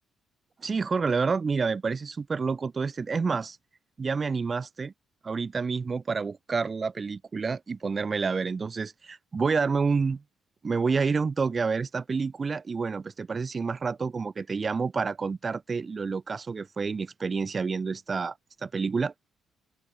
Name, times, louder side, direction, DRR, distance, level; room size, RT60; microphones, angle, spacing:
voice 1, 0.6-3.6 4.0-4.9 5.2-10.2 10.6-18.3 18.6-19.1, right 5 dB, 35° right, 0.4 m, -28 dB
open air
cardioid pair, 90°, 0 cm